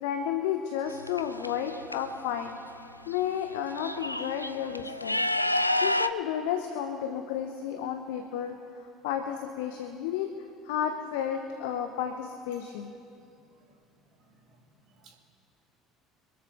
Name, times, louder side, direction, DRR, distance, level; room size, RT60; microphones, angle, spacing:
voice 1, 0.0-2.6 3.1-5.2 5.8-8.6 9.0-10.3 10.6-12.9, left 9 dB, 65° left, 7 dB, 0.8 m, -32 dB
sound 1, 0.9-2.0 3.1-3.2 3.5-6.1, left 1 dB, 90° left, 0.3 m, -29 dB
voice 2, 14.1-14.6 14.9-15.2, right 4 dB, 50° right, 0 dB, 3.0 m, -60 dB
26.0 x 13.5 x 3.1 m, 2.6 s
figure-of-eight pair, 60°, 0 cm